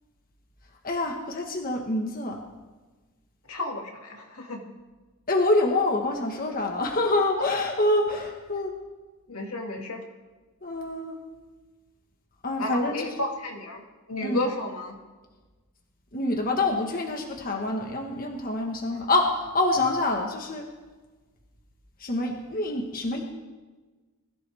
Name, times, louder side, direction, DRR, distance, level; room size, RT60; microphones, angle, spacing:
voice 1, 0.8-2.4 5.3-8.7 10.6-11.2 12.4-13.1 14.2-14.4 16.1-20.7 22.0-23.2, left 2 dB, 40° left, 2 dB, 1.5 m, -26 dB
voice 2, 3.5-4.6 9.3-10.0 12.6-13.8 14.1-15.0 18.9-19.0, left 2 dB, 85° left, 1 dB, 2.3 m, -32 dB
21.0 x 14.5 x 3.5 m, 1.3 s
head